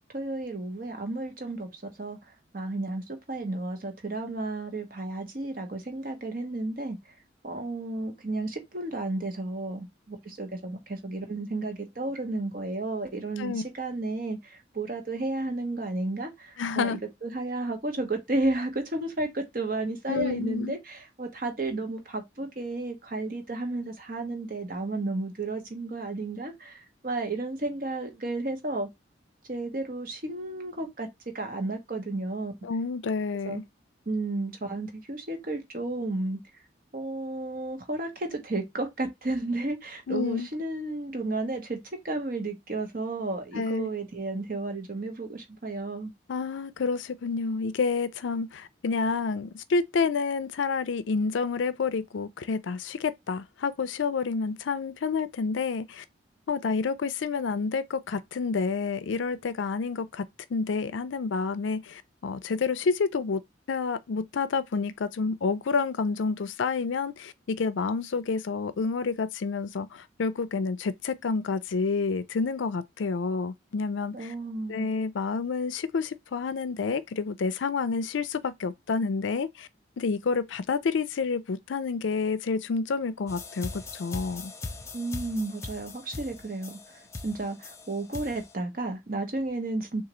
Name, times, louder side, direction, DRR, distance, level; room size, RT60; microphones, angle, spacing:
voice 1, 0.1-2.2 2.5-7.0 7.4-28.9 29.5-31.1 31.3-32.5 33.4-33.6 34.1-36.4 36.9-41.8 42.0-46.1 74.1-74.9 84.9-90.0, right 2 dB, 45° right, 0.9 m, -32 dB
voice 2, 16.6-17.0 20.1-20.8 32.6-33.6 40.1-40.5 43.5-43.9 46.3-56.0 56.5-60.2 60.5-63.4 63.7-74.3 74.7-79.7 80.0-84.5, left 4 dB, 80° left, 0.4 m, -29 dB
sound 1, 83.3-88.5, left 3 dB, 15° left, 0.4 m, -40 dB
3.8 x 2.4 x 3.0 m
head